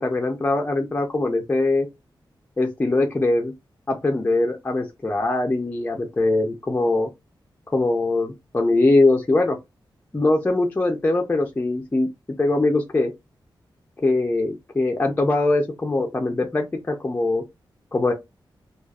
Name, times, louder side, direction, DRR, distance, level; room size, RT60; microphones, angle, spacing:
voice 1, 0.0-1.9 2.6-3.5 3.9-7.1 7.7-9.6 10.1-12.1 12.4-13.1 14.0-17.4 17.9-18.1, left 2 dB, 20° left, 0.5 m, -22 dB
4.8 x 2.3 x 2.3 m
wide cardioid pair, 150°, 8 cm